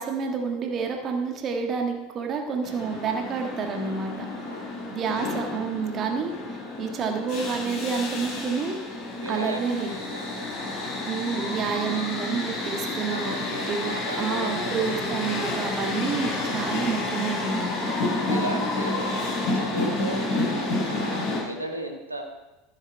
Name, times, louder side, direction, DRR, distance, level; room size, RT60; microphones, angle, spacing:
voice 1, 0.0-4.3 4.9-8.8 9.3-9.9 11.1-13.4 13.7-13.9 14.2-17.8, right 5 dB, 35° right, 3 dB, 1.6 m, -29 dB
sound 1, 2.6-21.4, left 2 dB, 45° left, 4.5 m, -30 dB
voice 2, 3.7-4.8 9.2-11.0 13.1-14.8 18.1-19.1 19.5-22.2, right 1 dB, 85° right, 3 dB, 1.5 m, -36 dB
14.5 x 7.4 x 4.6 m, 1.1 s
figure-of-eight pair, 75°, 0 cm